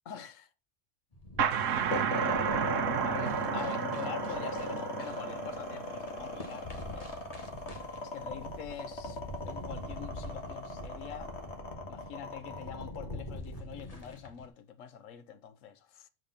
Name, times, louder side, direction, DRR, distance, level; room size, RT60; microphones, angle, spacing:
voice 1, 0.1-0.5 1.4-1.5 3.0-7.1 8.0-9.2 9.4-11.3 11.9-16.1, left 8 dB, 85° left, 1.2 m, -44 dB
sound 1, 1.1-14.5, left 1 dB, 30° left, 1.7 m, -46 dB
sound 2, 1.4-6.8, right 8 dB, 85° right, 1.2 m, -33 dB
sound 3, 1.9-14.2, left 1 dB, 60° left, 2.1 m, -38 dB
8.0 x 5.0 x 5.6 m
omnidirectional pair, 1.3 m